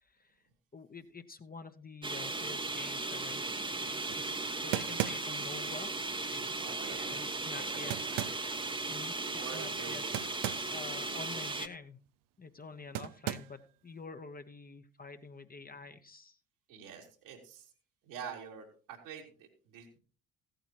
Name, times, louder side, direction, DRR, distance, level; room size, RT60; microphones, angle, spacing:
voice 1, 0.0-0.4 0.7-3.5 3.8-8.0 8.9-10.1 10.6-12.0 12.4-16.4, left 4 dB, 20° left, 8 dB, 1.0 m, -48 dB
sound 1, 2.0-11.7, right 3 dB, 10° right, 1.0 m, -37 dB
sound 2, 4.1-4.2 4.7-5.5 7.9-8.5 10.1-10.7 11.0-11.1 12.9-13.6, right 15 dB, 55° right, 0.6 m, -36 dB
voice 2, 6.5-7.2 7.5-8.3 9.3-10.2 11.1-11.2 16.7-17.7 18.0-20.0, right 7 dB, 75° right, 0 dB, 2.8 m, -47 dB
16.0 x 9.0 x 3.0 m, 0.39 s
figure-of-eight pair, 45°, 40 cm